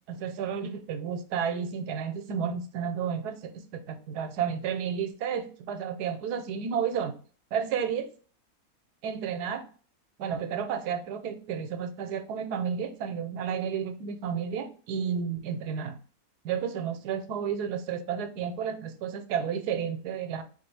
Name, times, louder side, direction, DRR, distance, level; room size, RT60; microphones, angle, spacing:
voice 1, 0.1-7.1 7.5-8.1 9.0-9.7 10.2-16.0 16.4-20.4, right 7 dB, 90° right, 1.2 m, -32 dB
4.1 x 2.4 x 4.6 m
omnidirectional pair, 1.7 m